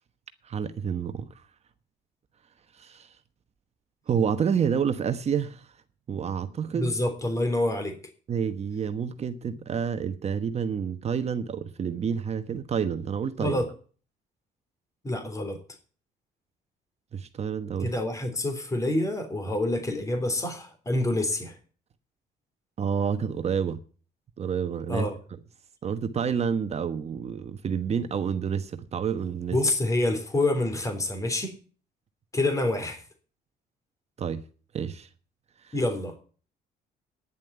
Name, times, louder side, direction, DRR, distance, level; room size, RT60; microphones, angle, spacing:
voice 1, 0.4-1.3 2.8-3.1 4.1-5.6 6.1-6.9 8.3-13.6 17.1-17.9 22.8-23.8 24.4-25.1 25.8-29.6 34.2-34.4 34.7-35.1 35.6-35.8, right 7 dB, 40° right, 1.2 m, -29 dB
voice 2, 6.7-8.0 13.4-13.7 15.0-15.6 17.8-21.5 24.9-25.2 29.5-31.6 32.3-33.0 35.7-36.2, left 1 dB, 20° left, 3.5 m, -27 dB
10.5 x 7.5 x 9.3 m
cardioid pair, 110°, 17 cm